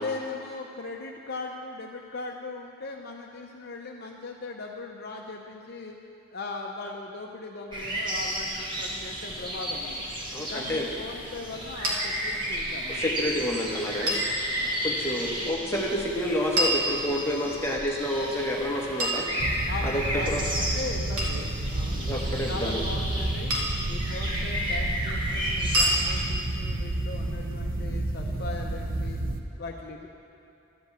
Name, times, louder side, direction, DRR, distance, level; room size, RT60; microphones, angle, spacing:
voice 1, 0.0-6.0 6.3-10.1 10.5-13.2 14.6-14.8 19.7-23.5 23.9-29.2 29.6-30.1, left 3 dB, 45° left, 1 dB, 0.6 m, -39 dB
sound 1, 7.7-26.2, equal, 20° right, 1.3 m, -33 dB
voice 2, 10.3-10.9 13.0-14.2 14.8-19.3 19.8-20.4 22.1-22.8, left 1 dB, 10° left, -3 dB, 1.1 m, -29 dB
sound 2, 11.8-12.0 14.1-14.3 16.6-17.5 19.0-19.9 21.2-21.5 23.5-23.9 25.7-26.0, right 1 dB, 90° right, 1.8 m, -27 dB
sound 3, 19.4-29.4, right 2 dB, 40° right, 0.6 m, -31 dB
12.5 x 5.2 x 7.9 m, 2.9 s
head